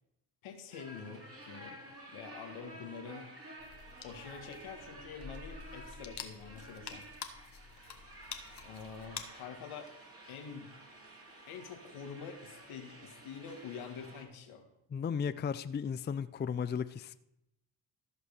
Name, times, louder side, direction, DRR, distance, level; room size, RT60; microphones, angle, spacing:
voice 1, 0.4-1.8 2.1-3.3 4.0-7.1 8.6-9.9 10.3-10.7 11.5-14.7, left 6 dB, 75° left, 1.8 m, -46 dB
sound 1, 0.7-14.2, right 1 dB, 30° right, 2.9 m, -52 dB
sound 2, 3.6-9.2, left 6 dB, 55° left, 1.5 m, -48 dB
voice 2, 14.9-17.1, left 6 dB, 25° left, 0.4 m, -35 dB
14.0 x 5.1 x 6.5 m
supercardioid pair, 55°, 49 cm